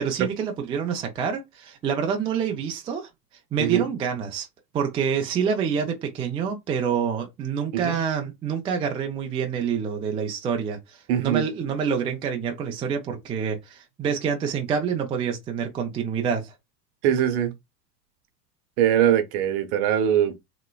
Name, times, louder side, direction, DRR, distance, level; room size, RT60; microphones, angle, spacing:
voice 1, 0.0-3.1 3.5-4.5 4.7-16.5, right 7 dB, 15° right, 0.3 m, -27 dB
voice 2, 11.1-11.4 17.0-17.5 18.8-20.4, right 10 dB, 50° right, 0.9 m, -22 dB
2.9 x 2.9 x 2.2 m
hypercardioid pair, 85°, 50 cm